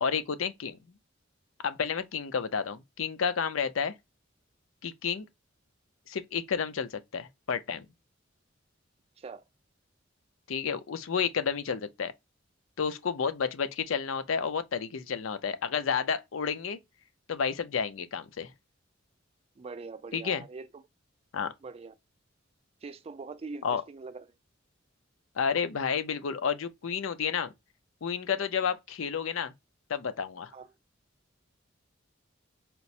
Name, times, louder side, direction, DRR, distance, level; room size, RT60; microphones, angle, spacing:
voice 1, 0.0-0.8 1.6-3.9 4.8-5.3 6.1-7.9 10.5-12.1 12.8-16.8 17.3-18.5 20.1-20.4 21.3-21.5 23.6-23.8 25.4-27.5 28.0-29.5 29.9-30.5, left 6 dB, 85° left, 0.5 m, -31 dB
voice 2, 19.6-20.8 21.6-21.9 22.8-24.4 28.6-28.7 30.5-30.7, right 4 dB, 30° right, 0.3 m, -43 dB
4.3 x 2.0 x 2.6 m
head